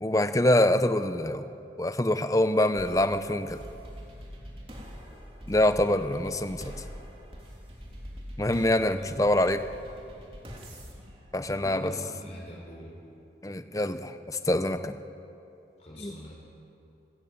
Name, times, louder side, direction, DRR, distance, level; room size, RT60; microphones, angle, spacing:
voice 1, 0.0-1.5 1.8-3.6 5.5-6.7 8.4-9.6 11.3-11.9 13.4-15.0 16.0-16.1, left 1 dB, 20° left, 10 dB, 0.8 m, -25 dB
sound 1, 2.8-12.2, equal, 30° right, 3.1 m, -44 dB
voice 2, 11.6-12.9 15.8-16.3, equal, 40° left, -2 dB, 4.3 m, -43 dB
28.0 x 14.0 x 8.9 m, 2.8 s
head